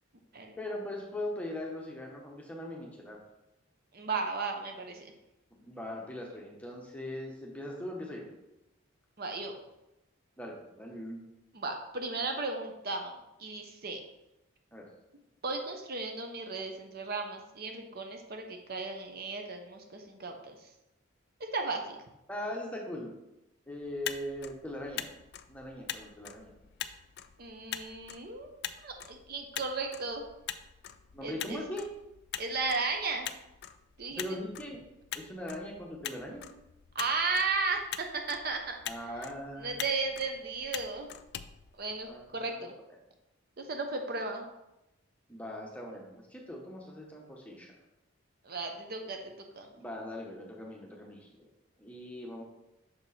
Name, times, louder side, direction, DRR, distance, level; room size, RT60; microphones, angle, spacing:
voice 1, 0.6-3.2 5.6-8.3 10.4-11.2 14.7-14.8 22.3-23.1 23.7-25.1 25.5-26.5 31.1-31.8 34.1-34.8 35.1-36.5 38.9-39.8 42.1-42.7 45.3-47.7 49.7-51.5 51.8-52.4, left 1 dB, 5° left, -1 dB, 1.0 m, -40 dB
voice 2, 3.9-5.1 9.2-9.5 11.5-13.1 13.4-14.0 15.4-20.5 21.5-22.0 27.4-28.5 28.8-30.2 31.2-31.6 32.4-33.3 34.0-34.2 36.9-38.8 39.2-39.3 39.6-41.1 41.8-42.7 43.7-44.5 48.4-49.7, right 3 dB, 45° right, 4 dB, 0.7 m, -35 dB
Motor vehicle (road), 23.8-42.4, left 10 dB, 50° left, 0.3 m, -44 dB
6.5 x 4.5 x 4.2 m, 0.92 s
head